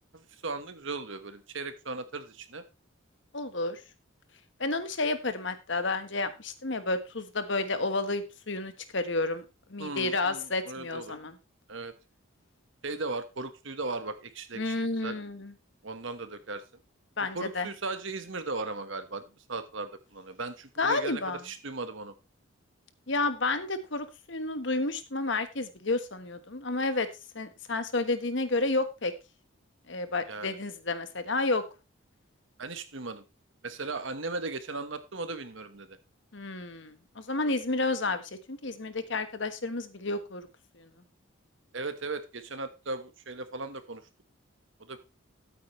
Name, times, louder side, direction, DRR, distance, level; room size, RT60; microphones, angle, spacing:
voice 1, 0.1-2.6 9.8-11.1 11.7-11.9 12.8-15.2 15.8-16.6 17.3-19.2 19.5-22.1 30.3-30.6 32.6-33.2 33.6-36.0 41.7-44.0 44.8-45.0, right 3 dB, 65° right, 10 dB, 1.4 m, -37 dB
voice 2, 3.3-3.8 4.6-9.4 9.7-11.4 14.5-15.5 17.2-17.7 20.8-21.4 23.1-27.1 27.3-29.1 29.9-31.6 36.3-40.5 40.7-40.9, left 3 dB, 60° left, 10 dB, 1.3 m, -31 dB
13.5 x 8.5 x 3.2 m, 0.27 s
head